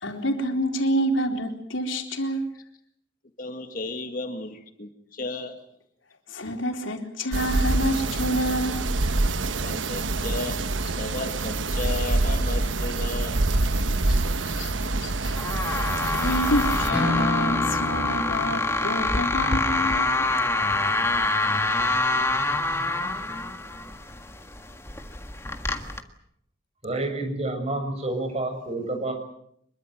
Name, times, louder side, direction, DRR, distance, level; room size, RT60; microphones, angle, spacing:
voice 1, 0.0-2.5 6.4-8.9 14.5-15.1 15.7-20.3, equal, 85° left, 4 dB, 4.0 m, -27 dB
voice 2, 3.4-5.5 9.6-13.6 14.1-14.5 15.2-15.4, left 2 dB, 45° left, 6 dB, 2.1 m, -35 dB
sound 1, 7.3-16.9, right 2 dB, 80° right, 1.1 m, -26 dB
sound 2, 15.0-26.0, left 2 dB, 15° left, 1.7 m, -26 dB
Acoustic guitar / Strum, 16.9-22.3, left 1 dB, 5° right, 5.5 m, -33 dB
voice 3, 26.8-29.1, right 2 dB, 35° right, 5 dB, 6.8 m, -29 dB
25.5 x 23.0 x 7.9 m, 0.71 s
head